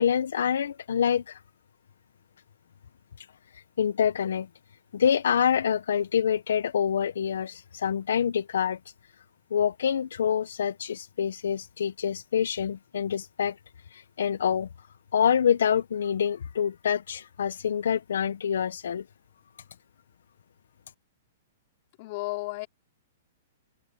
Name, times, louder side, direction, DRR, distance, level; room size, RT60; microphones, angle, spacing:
voice 1, 0.0-1.4 3.2-3.3 3.5-4.5 4.9-8.8 9.5-13.6 13.9-14.7 15.1-19.0, left 8 dB, 85° left, 0.6 m, -26 dB
voice 2, 22.0-22.7, left 23 dB, 40° left, 2.7 m, -33 dB
open air
hypercardioid pair, 155°, 0 cm